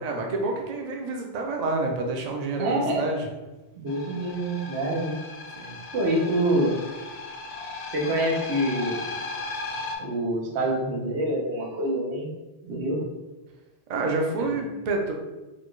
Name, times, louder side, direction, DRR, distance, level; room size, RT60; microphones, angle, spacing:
voice 1, 0.0-3.3 5.6-5.8 13.9-15.1, right 3 dB, 50° right, 1 dB, 0.5 m, -28 dB
voice 2, 2.6-3.0 3.8-5.2 5.9-6.8 7.9-9.1 10.0-12.3 12.6-13.0 14.4-14.5, right 1 dB, 90° right, -2 dB, 1.1 m, -26 dB
sound 1, 3.9-10.0, left 3 dB, 55° left, 0.5 m, -36 dB
4.1 x 2.3 x 3.1 m, 1.1 s
omnidirectional pair, 1.1 m